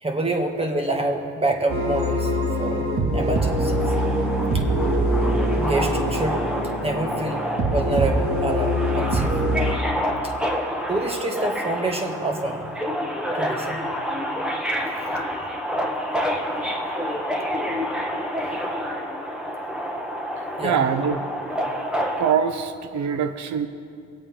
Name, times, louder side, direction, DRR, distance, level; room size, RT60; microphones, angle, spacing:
voice 1, 0.0-2.3 2.5-3.8 4.5-4.6 5.5-7.4 7.7-9.4 10.9-12.7 13.3-13.8 20.6-20.9, right 2 dB, 20° right, 2 dB, 1.8 m, -27 dB
sound 1, 1.7-9.7, right 1 dB, 45° right, 2.3 m, -23 dB
Subway metro underground, 3.4-22.3, equal, 5° right, 1.4 m, -28 dB
voice 2, 20.6-21.2 21.5-21.9 22.2-23.7, right 7 dB, 70° right, 9 dB, 1.0 m, -24 dB
23.5 x 8.3 x 3.8 m, 2.4 s
cardioid pair, 90°, 30 cm